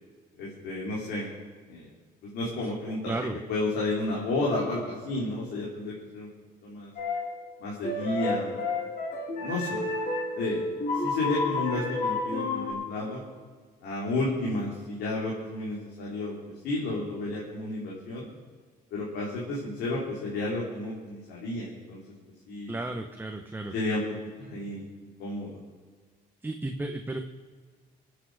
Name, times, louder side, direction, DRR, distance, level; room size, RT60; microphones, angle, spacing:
voice 1, 0.4-1.3 1.7-1.9 2.2-3.1 3.5-6.3 6.6-6.9 7.6-8.6 9.4-9.8 10.3-13.2 13.8-18.3 18.9-22.0 22.5-22.8 23.7-24.0 24.4-25.6, left 2 dB, 75° left, -4 dB, 3.7 m, -32 dB
voice 2, 3.1-3.4 22.7-23.7 26.4-27.2, right 2 dB, 10° right, 4 dB, 1.0 m, -33 dB
sound 1, 7.0-7.4 7.8-12.7, left 2 dB, 50° left, 3.9 m, -30 dB
23.5 x 8.7 x 4.9 m, 1.5 s
cardioid pair, 110°, 17 cm